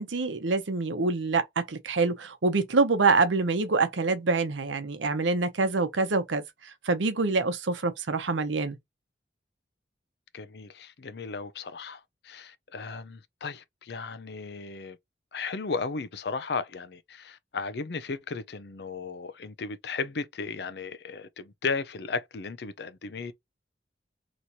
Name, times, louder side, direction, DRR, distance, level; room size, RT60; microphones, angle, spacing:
voice 1, 0.0-8.8, right 3 dB, 90° right, 0.8 m, -26 dB
voice 2, 10.3-12.0 12.2-15.0 15.3-23.3, left 4 dB, 60° left, 0.5 m, -35 dB
3.0 x 2.6 x 4.3 m
head